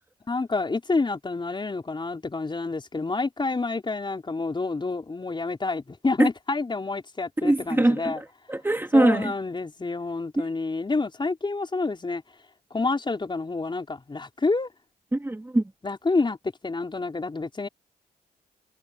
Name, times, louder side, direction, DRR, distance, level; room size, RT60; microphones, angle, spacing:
voice 1, 0.3-8.2 8.9-12.2 12.7-14.7 15.8-16.4 16.6-17.7, left 3 dB, 30° left, 4.9 m, -28 dB
voice 2, 7.4-9.3 15.1-15.6, right 1 dB, 15° right, 2.0 m, -22 dB
cardioid pair, 70°, 17 cm